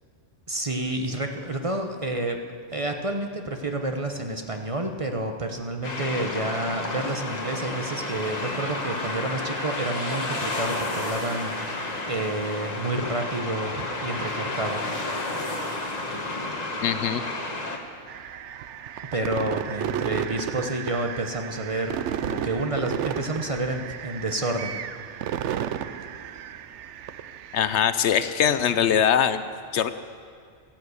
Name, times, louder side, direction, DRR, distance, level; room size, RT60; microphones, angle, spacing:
voice 1, 0.5-2.4 2.7-14.8 19.1-24.8, right 2 dB, 30° right, 4 dB, 0.9 m, -29 dB
sound 1, 5.8-17.8, left 2 dB, 35° left, 1.4 m, -31 dB
voice 2, 16.8-17.2 27.5-29.4 29.7-29.9, left 8 dB, 70° left, 12 dB, 0.9 m, -22 dB
sound 2, 18.1-27.8, right 9 dB, 75° right, 0.9 m, -33 dB
15.0 x 12.0 x 8.1 m, 2.1 s
omnidirectional pair, 1.2 m